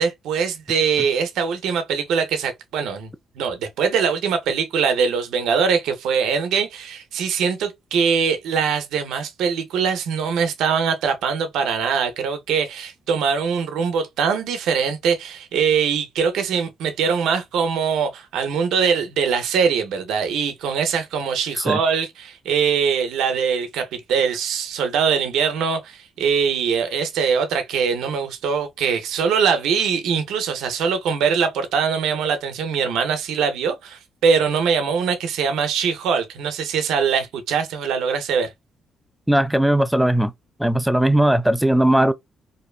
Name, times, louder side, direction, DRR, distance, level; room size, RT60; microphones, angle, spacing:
voice 1, 0.0-3.1 3.4-38.5, right 6 dB, 85° right, 0.6 m, -22 dB
voice 2, 39.3-40.3 40.6-42.1, right 1 dB, ahead, 0.3 m, -18 dB
2.7 x 2.2 x 2.3 m
cardioid pair, 90°, 0 cm